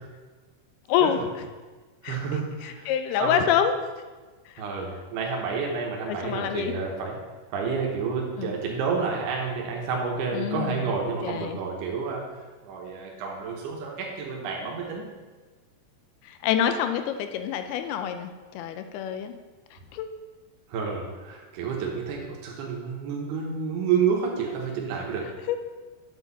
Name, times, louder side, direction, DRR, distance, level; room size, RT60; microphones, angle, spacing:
voice 1, 0.9-1.2 2.0-2.2 2.6-3.7 4.5-4.6 6.1-6.7 8.4-8.5 10.3-10.9 11.2-11.6 16.2-19.3 19.9-20.1 25.5-25.6, left 9 dB, 85° left, 8 dB, 2.6 m, -26 dB
voice 2, 2.0-2.9 3.2-3.5 4.6-7.2 7.5-12.2 12.6-15.0 20.7-25.3, right 5 dB, 85° right, -1 dB, 3.2 m, -29 dB
9.1 x 7.8 x 4.1 m, 1.3 s
omnidirectional pair, 4.6 m